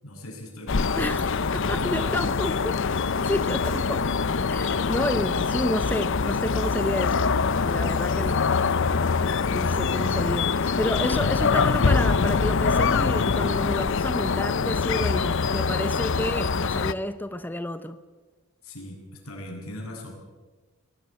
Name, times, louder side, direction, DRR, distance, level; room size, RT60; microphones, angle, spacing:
voice 1, 0.0-2.4 3.1-4.0 18.6-20.1, left 1 dB, 85° left, 1 dB, 7.7 m, -40 dB
sound 1, 0.7-16.9, left 5 dB, 60° left, 0.7 m, -24 dB
voice 2, 1.0-1.3 1.5-2.8 3.3-4.0 4.5-7.3 7.6-8.4 9.5-18.0, left 1 dB, 10° left, 11 dB, 0.8 m, -30 dB
22.5 x 19.0 x 8.9 m, 1.3 s
head